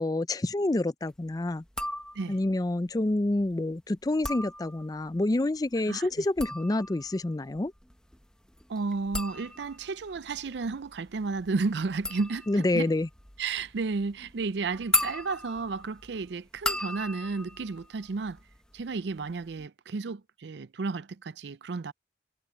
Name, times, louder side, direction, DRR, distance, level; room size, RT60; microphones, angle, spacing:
voice 1, 0.0-1.6 2.3-7.7 12.5-13.1, left 2 dB, 20° left, 0.4 m, -28 dB
sound 1, 1.7-2.5 4.0-5.1 6.1-18.8 19.1-19.6, left 1 dB, 5° left, 1.2 m, -36 dB
voice 2, 5.9-6.2 8.7-12.9 13.4-18.4 18.7-21.9, right 4 dB, 75° right, 0.5 m, -32 dB
head